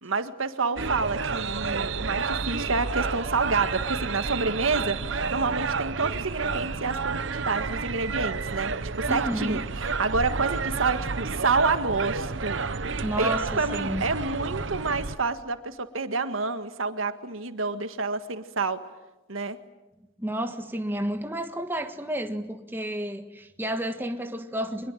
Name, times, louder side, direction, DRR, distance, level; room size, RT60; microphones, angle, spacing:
voice 1, 0.0-12.6 13.2-18.8 19.3-19.6, right 4 dB, 85° right, 1.7 m, -28 dB
sound 1, 0.8-15.2, right 4 dB, 70° right, 1.0 m, -30 dB
voice 2, 9.1-9.6 13.0-14.0 20.2-24.9, right 1 dB, 10° right, 1.5 m, -31 dB
24.5 x 21.5 x 9.2 m
head